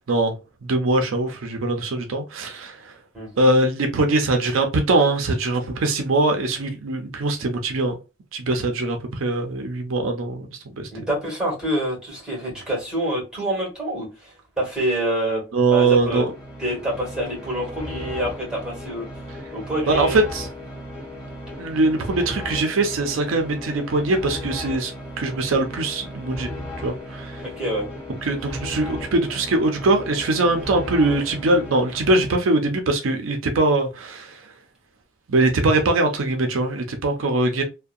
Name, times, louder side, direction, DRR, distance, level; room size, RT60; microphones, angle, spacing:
voice 1, 0.6-2.9 3.4-8.0 8.3-10.9 15.5-16.3 19.9-20.5 21.6-24.9 25.2-26.5 26.8-27.4 28.2-34.4 35.3-37.6, right 2 dB, 80° right, 0.5 m, -22 dB
voice 2, 10.9-15.4 15.7-16.2 16.6-19.1 19.5-20.2 27.4-27.9, right 1 dB, 5° right, 1.4 m, -26 dB
sound 1, 15.7-32.6, left 1 dB, 15° left, 1.4 m, -36 dB
2.6 x 2.1 x 2.3 m
head